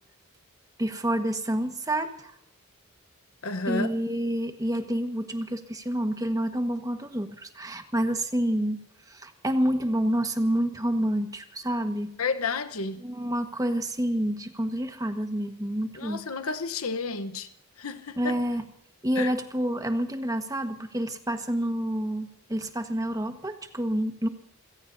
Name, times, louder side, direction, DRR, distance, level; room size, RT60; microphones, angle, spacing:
voice 1, 0.8-2.3 3.6-12.2 13.0-16.2 18.2-18.6 19.0-24.3, right 1 dB, 15° right, 1.5 m, -28 dB
voice 2, 3.4-3.9 12.2-13.0 16.0-17.5 17.8-18.4 19.2-19.3, left 4 dB, 75° left, 1.1 m, -31 dB
29.0 x 17.0 x 2.7 m
head